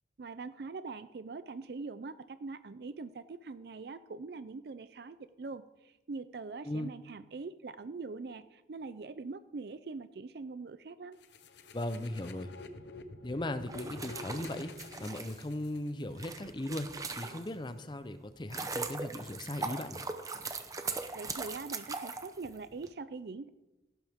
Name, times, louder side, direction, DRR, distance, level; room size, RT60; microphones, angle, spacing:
voice 1, 0.2-11.2 21.1-23.5, right 4 dB, 60° right, 13 dB, 0.4 m, -43 dB
sound 1, 11.2-16.1, left 2 dB, 75° left, 0.9 m, -48 dB
voice 2, 11.7-12.5 13.2-14.7 15.0-16.9 17.2-20.1, left 1 dB, 25° left, 11 dB, 0.6 m, -38 dB
sound 2, 13.6-17.7 18.2-22.9, right 4 dB, 20° right, 0.8 m, -40 dB
16.0 x 12.0 x 3.6 m, 1.0 s
head